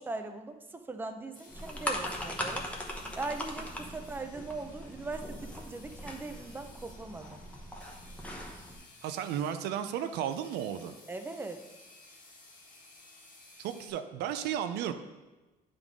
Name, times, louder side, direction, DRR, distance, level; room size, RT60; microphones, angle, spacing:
voice 1, 0.0-2.7 3.2-7.4 11.1-11.6, right 3 dB, 10° right, 6 dB, 0.5 m, -40 dB
sound 1, 1.3-13.9, left 2 dB, 50° left, 1.7 m, -56 dB
sound 2, 1.5-8.8, equal, 10° left, 0.9 m, -40 dB
voice 2, 9.0-10.9 13.6-14.9, right 9 dB, 85° right, 9 dB, 0.5 m, -34 dB
8.9 x 3.8 x 3.6 m, 1.2 s
cardioid pair, 110°, 17 cm